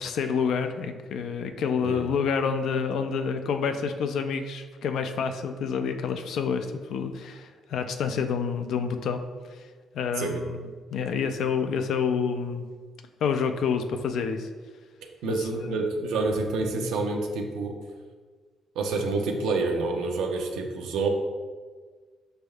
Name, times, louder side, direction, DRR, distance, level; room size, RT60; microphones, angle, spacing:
voice 1, 0.0-9.2 9.9-10.6 10.9-12.7 13.2-14.5 15.3-15.4 15.6-15.8, left 6 dB, 75° left, 7 dB, 0.3 m, -28 dB
voice 2, 15.2-17.7 18.8-21.1, right 3 dB, 90° right, 3 dB, 0.5 m, -28 dB
5.2 x 3.4 x 2.3 m, 1.5 s
cardioid pair, 90°, 0 cm